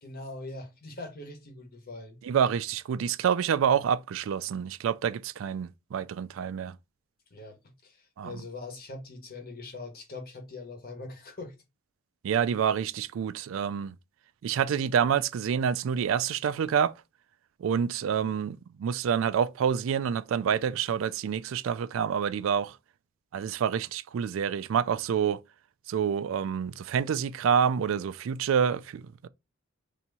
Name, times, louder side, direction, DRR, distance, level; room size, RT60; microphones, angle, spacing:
voice 1, 0.0-2.2 7.3-11.5, left 2 dB, 45° left, 1.2 m, -42 dB
voice 2, 2.2-6.8 8.2-8.3 12.2-14.0 14.4-16.9 17.6-22.8 23.3-25.4 25.9-29.3, right 7 dB, 70° right, 0.3 m, -27 dB
3.4 x 2.9 x 4.1 m
head